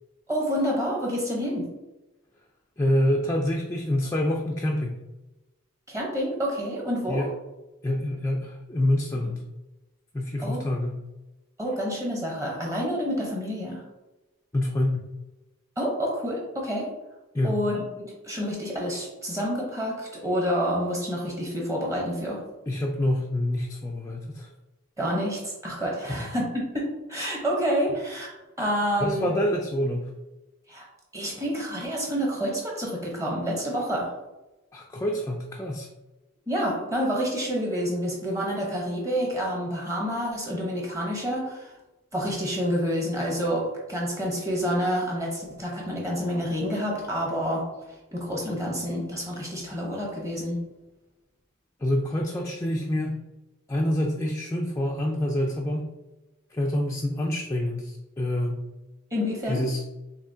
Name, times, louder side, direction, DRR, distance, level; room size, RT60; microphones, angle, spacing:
voice 1, 0.3-1.7 5.9-7.3 10.4-10.6 11.6-13.8 15.8-16.9 17.4-22.4 25.0-28.3 28.6-29.3 30.7-30.9 31.1-34.1 36.5-41.7 42.1-50.6 59.1-59.6, equal, 15° right, -2 dB, 0.9 m, -28 dB
voice 2, 2.8-5.0 7.1-7.3 7.8-9.4 10.1-11.0 14.5-15.1 17.3-17.6 22.7-24.5 26.0-26.3 29.1-30.1 34.7-35.9 51.8-53.2 53.7-55.9 56.5-58.7 59.5-59.8, left 1 dB, 15° left, -1 dB, 0.4 m, -27 dB
6.9 x 2.8 x 2.7 m, 1.1 s
head